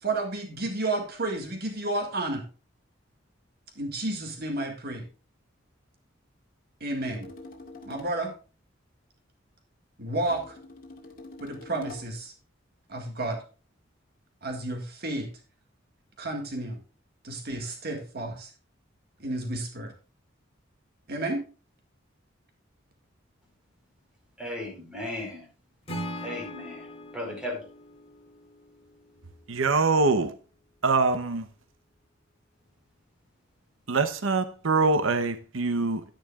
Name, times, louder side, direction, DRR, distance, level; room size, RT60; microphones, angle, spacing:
voice 1, 0.0-2.4 3.8-5.1 6.8-7.3 7.9-8.3 10.0-10.6 11.4-12.3 12.9-13.4 14.4-15.3 16.2-16.8 17.2-18.5 19.2-19.9 21.1-21.4, right 2 dB, 55° right, 1.9 m, -31 dB
sound 1, 7.0-8.2 10.2-12.2, left 2 dB, 45° left, 2.2 m, -45 dB
voice 2, 24.4-25.4 26.2-27.6, left 1 dB, 5° right, 4.7 m, -36 dB
Acoustic guitar / Strum, 25.8-29.0, equal, 30° left, 3.1 m, -40 dB
voice 3, 29.5-30.3 30.8-31.5 33.9-36.0, right 3 dB, 90° right, 0.9 m, -24 dB
11.5 x 10.0 x 2.4 m
head